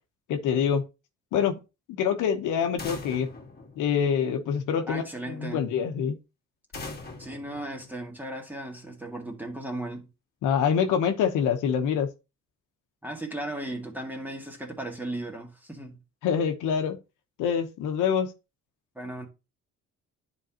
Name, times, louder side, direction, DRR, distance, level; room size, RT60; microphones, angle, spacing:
voice 1, 0.3-0.8 1.3-1.5 2.0-3.3 3.8-6.2 10.4-12.1 16.2-17.0 17.4-18.3, left 7 dB, 90° left, 1.0 m, -25 dB
sound 1, 2.8-4.6 6.7-8.5, left 3 dB, 30° left, 1.7 m, -42 dB
voice 2, 4.9-5.6 7.2-10.1 13.0-16.0 18.9-19.3, right 1 dB, 5° right, 1.8 m, -36 dB
10.5 x 3.9 x 2.9 m
cardioid pair, 90°, 30 cm